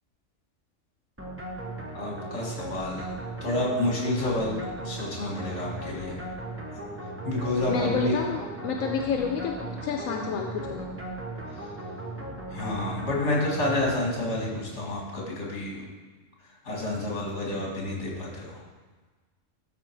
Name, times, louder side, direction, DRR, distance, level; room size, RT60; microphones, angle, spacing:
sound 1, 1.2-14.5, right 2 dB, 10° right, 1.0 m, -37 dB
voice 1, 1.9-3.1 3.4-6.2 7.2-8.1 12.5-15.8 16.6-18.6, left 2 dB, 60° left, -2 dB, 2.3 m, -29 dB
voice 2, 7.7-10.9, left 5 dB, 85° left, 3 dB, 1.0 m, -30 dB
12.5 x 4.5 x 4.6 m, 1.4 s
omnidirectional pair, 1.4 m